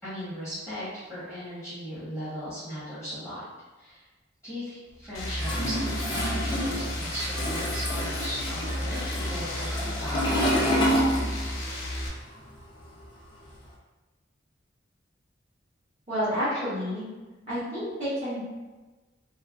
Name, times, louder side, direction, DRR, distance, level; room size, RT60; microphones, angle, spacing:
voice 1, 0.0-3.4 3.8-4.0 4.4-11.0, equal, 5° right, -14 dB, 1.1 m, -38 dB
sound 1, 5.1-12.1, left 1 dB, 75° left, 0.6 m, -33 dB
Toilet flush, 5.3-11.8 12.0-13.6, equal, 25° left, 0.5 m, -29 dB
voice 2, 16.1-17.1 17.5-18.4, equal, 30° right, -18 dB, 1.3 m, -29 dB
3.2 x 2.1 x 2.4 m, 1.2 s
head